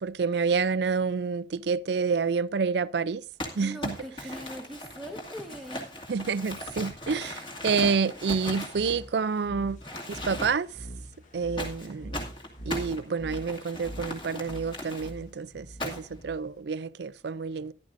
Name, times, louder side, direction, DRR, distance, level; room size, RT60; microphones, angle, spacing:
voice 1, 0.0-3.2 3.5-4.0 6.1-9.8 10.1-10.7 11.3-12.1 12.7-17.7, right 5 dB, 65° right, 0.4 m, -28 dB
Crumpling crinkling, 3.4-9.4 9.8-10.8 11.6-15.1 15.8-16.2, left 1 dB, 25° left, 2.3 m, -38 dB
voice 2, 3.6-5.9, equal, ahead, 1.2 m, -41 dB
sound 1, 8.6-16.6, right 1 dB, 45° left, 1.6 m, -44 dB
14.0 x 11.5 x 2.6 m
head